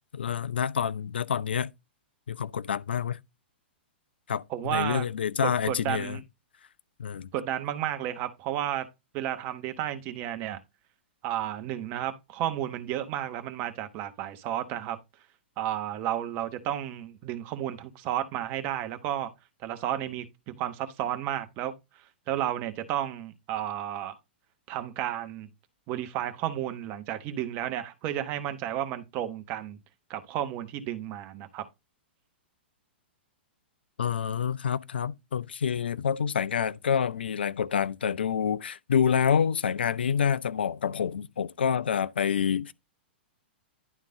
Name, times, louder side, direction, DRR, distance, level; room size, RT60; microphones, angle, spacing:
voice 1, 0.1-1.7 2.3-3.2 4.3-6.2 7.0-7.3 34.0-42.7, left 7 dB, 65° left, 0.4 m, -27 dB
voice 2, 4.5-5.1 5.4-6.2 7.3-8.9 9.1-10.6 11.2-15.0 15.6-19.3 19.6-24.2 24.7-25.5 25.9-29.8 30.1-31.7, right 11 dB, 35° right, 1.0 m, -32 dB
11.0 x 3.7 x 3.7 m
figure-of-eight pair, 105°, 6 cm